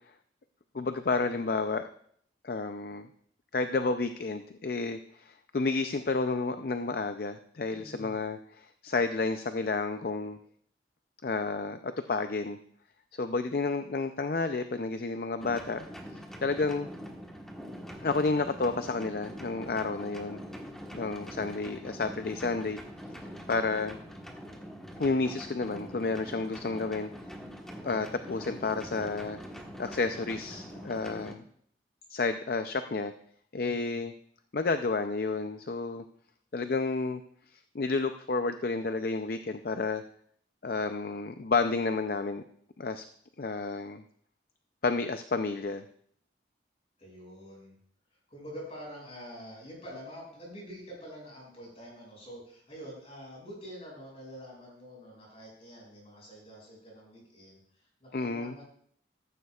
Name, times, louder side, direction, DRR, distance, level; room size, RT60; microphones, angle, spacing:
voice 1, 0.7-1.8 2.4-3.1 3.5-10.4 11.2-12.6 13.2-15.8 16.4-16.9 18.0-20.4 20.9-22.8 23.5-24.0 25.0-27.1 27.8-29.4 29.8-31.4 32.1-33.1 33.5-34.1 34.5-36.0 36.5-37.2 37.7-40.0 40.6-42.4 42.8-43.0 43.4-44.0 44.8-45.8 58.1-58.5, left 3 dB, 55° left, 9 dB, 0.5 m, -31 dB
voice 2, 7.7-8.2 19.7-20.2 22.2-22.6 30.5-31.0 33.6-34.0 47.0-47.8 48.3-58.6, equal, 35° left, -2 dB, 6.2 m, -47 dB
sound 1, 15.4-31.3, equal, 5° left, 1.3 m, -44 dB
15.0 x 13.5 x 2.4 m, 0.63 s
head